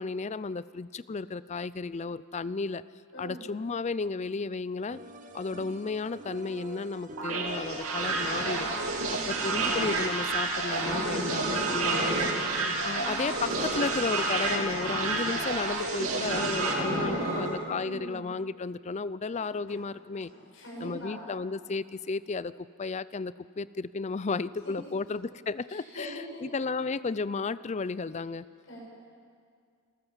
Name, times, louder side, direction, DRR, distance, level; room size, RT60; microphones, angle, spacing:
voice 1, 0.0-2.8 3.2-5.0 5.3-8.7 9.1-12.3 12.8-20.3 20.8-22.5 22.8-28.5, left 4 dB, 30° left, 17 dB, 0.4 m, -33 dB
voice 2, 3.1-3.5 9.0-9.7 12.9-13.3 16.6-18.3 19.3-19.4 20.3-21.2 25.7-26.4 28.7-28.8, equal, 60° left, -4 dB, 7.6 m, -42 dB
sound 1, 4.9-11.0, right 1 dB, 35° right, 1.5 m, -47 dB
sound 2, 7.2-16.7, right 3 dB, 75° right, 2.6 m, -30 dB
sound 3, 7.9-10.1 10.7-12.7 13.0-17.5, right 1 dB, 60° right, 5.0 m, -34 dB
26.5 x 13.5 x 7.3 m, 2.2 s
head